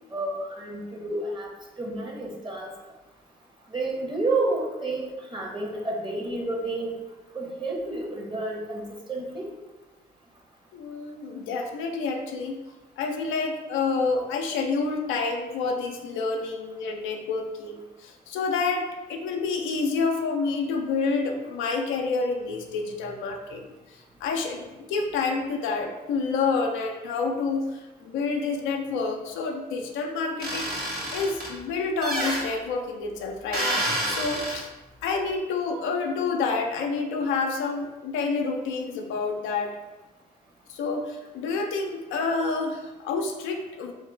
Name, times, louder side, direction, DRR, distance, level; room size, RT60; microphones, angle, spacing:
voice 1, 0.1-1.5 1.8-2.7 3.7-6.9 7.3-8.8 9.1-9.5, right 2 dB, 25° right, -1 dB, 1.2 m, -30 dB
voice 2, 10.7-12.5 13.0-23.6 24.2-33.7 34.1-34.7 35.0-39.7 40.7-43.9, left 4 dB, 75° left, 3 dB, 0.5 m, -28 dB
sound 1, 30.4-31.5 32.0-32.4 33.5-34.6, right 1 dB, 45° right, 1.4 m, -28 dB
3.6 x 3.2 x 3.2 m, 1.1 s
hypercardioid pair, 50°, 20 cm